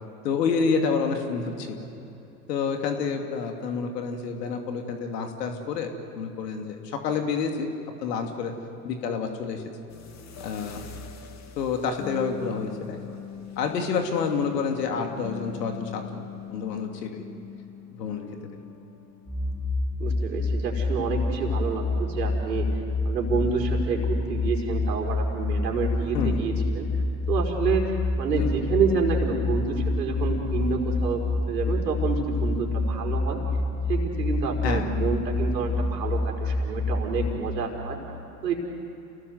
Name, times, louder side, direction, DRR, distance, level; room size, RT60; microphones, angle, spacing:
voice 1, 0.2-1.9 2.5-7.7 8.0-8.5 8.8-9.6 10.4-10.8 11.6-13.0 13.6-16.2 16.5-17.2 17.9-18.2 26.1-26.4 34.6-34.9, left 5 dB, 75° left, 4 dB, 2.7 m, -28 dB
sound 1, 9.9-19.7, left 7 dB, 35° left, 2.3 m, -42 dB
sound 2, 19.3-37.3, left 2 dB, 10° left, 6.6 m, -27 dB
voice 2, 20.0-22.7 23.0-27.8 28.2-33.4 33.9-38.0 38.4-38.5, right 4 dB, 85° right, 1 dB, 4.8 m, -28 dB
29.0 x 19.0 x 8.1 m, 2.9 s
hypercardioid pair, 95°, 49 cm